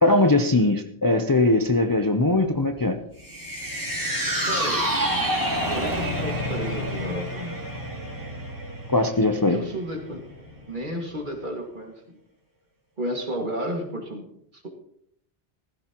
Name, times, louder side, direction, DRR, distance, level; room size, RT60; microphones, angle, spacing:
voice 1, 0.0-3.0 8.9-9.6, left 2 dB, 25° left, 5 dB, 0.6 m, -20 dB
Motorcycle, 1.9-11.5, left 1 dB, 75° right, 4.4 m, -36 dB
sound 1, 3.2-9.7 10.0-10.1, right 1 dB, 15° right, 2.6 m, -29 dB
voice 2, 4.5-4.8 5.7-7.6 9.4-10.2 10.7-12.2 13.0-14.3 14.5-14.7, equal, 45° right, 1 dB, 2.3 m, -32 dB
16.5 x 15.0 x 3.0 m, 0.71 s
omnidirectional pair, 1.2 m